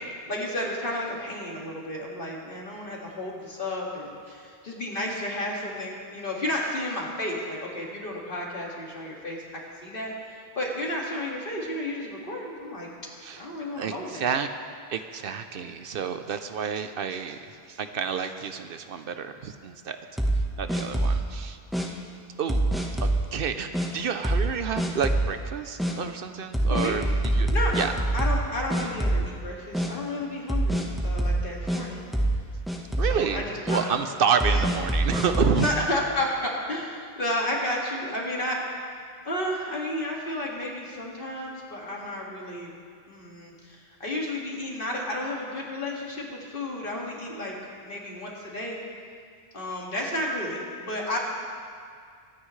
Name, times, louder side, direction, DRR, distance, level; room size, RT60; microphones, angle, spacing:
voice 1, 0.3-9.4 9.8-12.9 13.4-14.3 26.7-27.0 27.5-32.0 33.1-33.9 34.4-34.7 35.5-38.6 39.2-42.7 43.1-47.5 47.8-48.8 49.5-51.2, left 1 dB, 60° left, -3 dB, 2.3 m, -32 dB
voice 2, 13.8-14.5 14.9-20.0 20.6-21.6 22.4-27.9 33.0-35.7, right 6 dB, 65° right, 8 dB, 0.8 m, -29 dB
sound 1, 20.2-21.3 21.7-21.9 22.5-23.2 23.7-23.9 24.2-24.5 24.8-25.3 25.8-25.9 26.5-28.5 28.7-29.4 29.7-29.9 30.5-31.8 32.1-32.4 32.7-33.2 33.7-33.8 34.4-35.7, right 1 dB, ahead, 1.0 m, -25 dB
24.0 x 10.0 x 3.2 m, 2.2 s
omnidirectional pair, 1.0 m